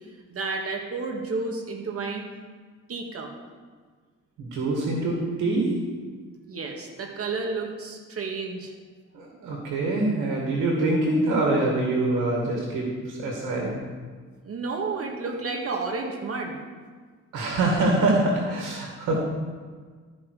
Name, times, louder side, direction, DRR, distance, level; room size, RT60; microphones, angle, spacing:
voice 1, 0.3-2.2 2.9-3.3 6.5-8.7 14.4-16.6, right 3 dB, 50° right, 2 dB, 1.9 m, -31 dB
voice 2, 4.4-5.7 9.1-13.8 17.3-19.2, right 2 dB, 90° right, -1 dB, 2.2 m, -25 dB
13.0 x 5.6 x 4.9 m, 1.5 s
cardioid pair, 90°, 30 cm